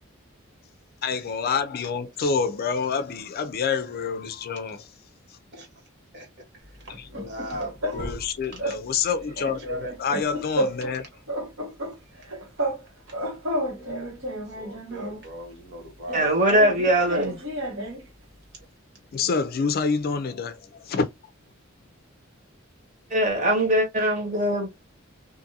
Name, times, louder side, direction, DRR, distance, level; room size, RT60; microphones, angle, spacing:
voice 1, 1.0-4.9 5.3-5.4 7.0-7.3 7.9-11.1 19.1-21.1, left 5 dB, 50° left, 0.4 m, -27 dB
voice 2, 6.1-8.2 8.5-8.6 9.3-10.0 13.7-14.1 14.5-16.3, equal, 55° right, 1.5 m, -39 dB
sound 1, 6.9-8.3 8.6-8.8 9.1-11.0 11.3-12.8 13.1-15.3 16.1-18.1, equal, 75° right, 1.3 m, -31 dB
voice 3, 16.1-17.4 23.1-24.7, right 1 dB, 40° right, 1.2 m, -21 dB
2.5 x 2.5 x 2.6 m
head